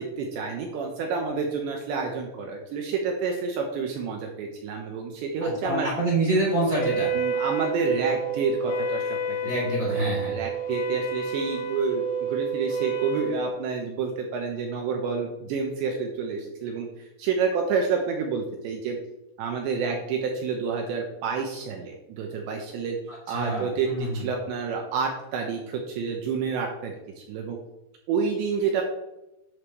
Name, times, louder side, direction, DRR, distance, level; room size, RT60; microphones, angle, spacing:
voice 1, 0.0-5.9 7.1-9.4 9.9-19.0 19.4-23.0 23.3-27.0 27.3-27.6 28.1-28.8, right 5 dB, 75° right, 1 dB, 2.9 m, -29 dB
voice 2, 5.4-7.1 9.4-10.3 23.1-24.3, right 1 dB, 20° right, -5 dB, 2.9 m, -26 dB
Wind instrument woodwind instrument, 6.7-13.4, right 4 dB, 70° left, 2.1 m, -29 dB
11.0 x 8.0 x 3.3 m, 0.95 s
omnidirectional pair, 5.9 m